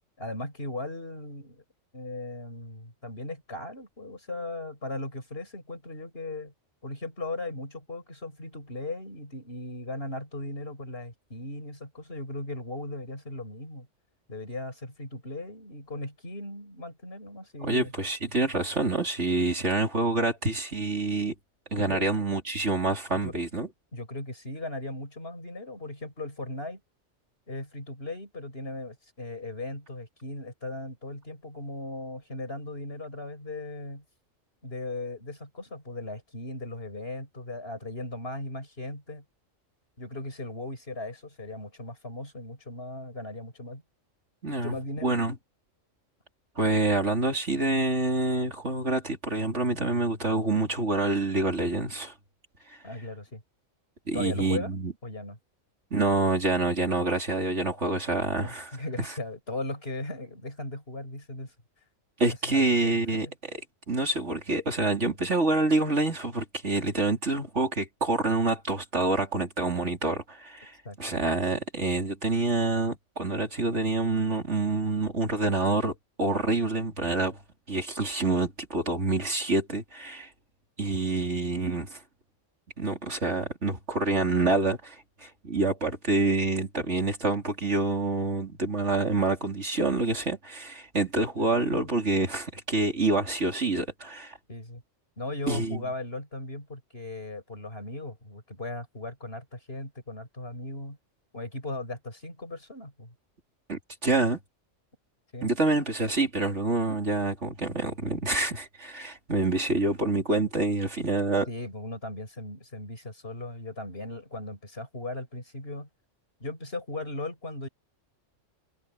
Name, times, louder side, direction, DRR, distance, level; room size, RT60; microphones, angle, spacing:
voice 1, 0.2-1.6 1.9-6.5 6.8-13.9 14.3-17.9 21.8-22.1 23.1-23.3 23.9-26.8 27.5-34.0 34.6-39.2 40.0-43.8 44.6-45.2 52.8-53.4 54.1-54.7 55.0-55.4 58.4-61.5 62.2-63.3 70.8-71.6 91.4-91.8 94.5-94.8 95.2-101.0 101.3-103.1 105.3-105.5 111.5-115.9 116.4-117.7, left 2 dB, 50° left, 5.7 m, -38 dB
voice 2, 17.6-21.3 21.7-23.7 44.4-44.8 45.0-45.3 46.6-52.1 52.7-52.8 54.1-54.9 55.9-58.7 59.0-59.1 62.2-63.3 63.9-77.4 77.7-80.3 80.8-82.0 82.8-94.4 95.5-95.8 103.7-104.4 105.4-111.5, right 2 dB, 65° right, 4.0 m, -27 dB
omnidirectional pair, 1.3 m